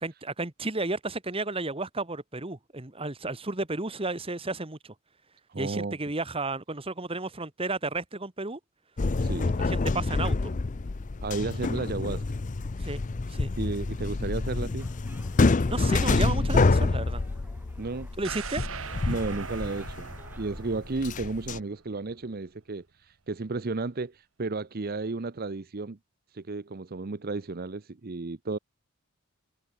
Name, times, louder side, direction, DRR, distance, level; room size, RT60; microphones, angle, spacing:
voice 1, 0.0-4.9 5.6-8.6 9.5-10.5 12.8-13.0 13.3-13.5 15.7-17.2 18.2-18.6, right 2 dB, 25° right, 1.5 m, -32 dB
voice 2, 5.5-6.0 9.2-9.6 11.2-12.3 13.6-14.9 17.8-18.1 19.0-20.1 20.4-26.0 26.3-28.6, right 3 dB, 45° right, 0.7 m, -33 dB
sound 1, 9.0-21.6, left 3 dB, 35° left, 0.5 m, -27 dB
sound 2, 14.8-20.8, right 1 dB, 10° right, 7.8 m, -56 dB
sound 3, 18.2-22.2 22.6-22.7, right 5 dB, 65° right, 1.3 m, -41 dB
head